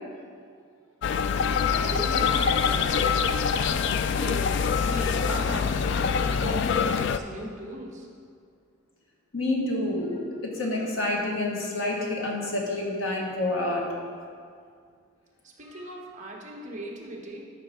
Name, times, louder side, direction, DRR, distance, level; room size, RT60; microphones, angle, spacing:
sound 1, 1.0-7.2, left 6 dB, 55° left, 0.3 m, -25 dB
voice 1, 1.7-8.1 15.4-17.5, right 1 dB, 35° right, -2 dB, 1.3 m, -38 dB
voice 2, 9.3-14.0, left 2 dB, 75° left, -2 dB, 1.6 m, -28 dB
12.5 x 5.6 x 3.7 m, 2.2 s
head